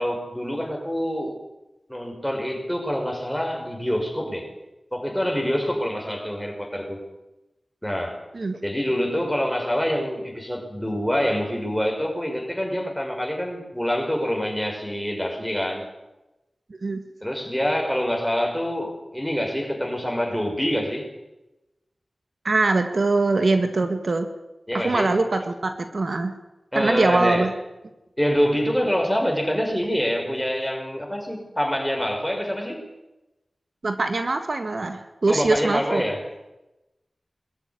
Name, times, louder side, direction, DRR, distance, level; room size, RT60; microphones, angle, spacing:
voice 1, 0.0-1.4 1.9-4.5 4.9-7.0 7.8-8.2 8.6-15.8 17.2-21.1 24.7-25.1 26.7-27.5 28.2-32.9 35.3-36.2, equal, 5° left, 2 dB, 5.9 m, -26 dB
voice 2, 16.7-17.0 22.4-24.3 24.7-26.3 26.7-27.5 33.8-36.0, right 3 dB, 65° right, 7 dB, 1.8 m, -23 dB
21.5 x 14.0 x 9.8 m, 1.0 s
wide cardioid pair, 60°, 0 cm